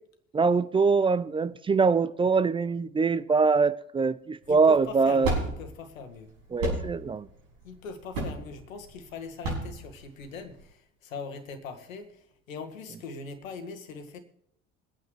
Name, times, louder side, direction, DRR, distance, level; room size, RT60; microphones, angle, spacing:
voice 1, 0.3-5.3 6.5-7.3, right 4 dB, 15° right, 0.3 m, -23 dB
sound 1, 4.4-10.6, right 2 dB, 70° right, 6.0 m, -33 dB
voice 2, 4.5-6.3 7.6-14.2, left 4 dB, 80° left, 1.6 m, -41 dB
23.5 x 9.0 x 3.2 m
hypercardioid pair, 65°, 39 cm